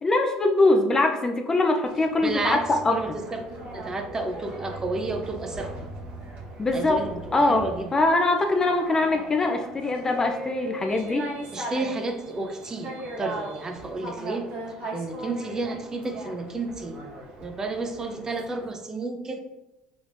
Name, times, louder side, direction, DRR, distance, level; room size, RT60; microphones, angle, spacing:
voice 1, 0.0-3.0 6.6-7.1 7.3-7.6 7.9-11.3, left 2 dB, 25° left, 4 dB, 0.5 m, -22 dB
sound 1, 1.8-18.7, right 2 dB, 65° right, 1.2 m, -40 dB
sound 2, 2.1-7.7, right 2 dB, 90° right, 0.8 m, -41 dB
voice 2, 2.2-2.6 2.9-3.5 3.7-5.9 6.7-7.9 11.5-14.5 14.9-17.0 17.4-19.4, right 3 dB, 25° right, 5 dB, 0.6 m, -31 dB
5.4 x 3.5 x 2.5 m, 1.0 s
supercardioid pair, 95°, 2 cm